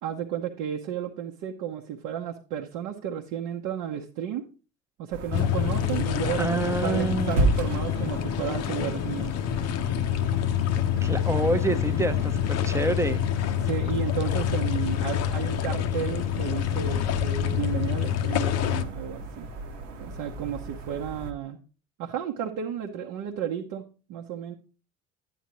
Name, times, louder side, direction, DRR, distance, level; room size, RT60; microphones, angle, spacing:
voice 1, 0.0-4.5 5.0-9.3 13.6-19.5 20.0-21.6 22.0-23.8 24.1-24.6, right 9 dB, 50° right, 0.9 m, -33 dB
sound 1, 5.1-21.3, right 2 dB, 75° right, 1.1 m, -35 dB
sound 2, 5.3-18.9, left 10 dB, 40° left, 0.7 m, -27 dB
voice 2, 6.4-7.5 11.0-13.2, right 2 dB, 5° right, 0.7 m, -27 dB
11.0 x 9.2 x 2.9 m
figure-of-eight pair, 60°, 38 cm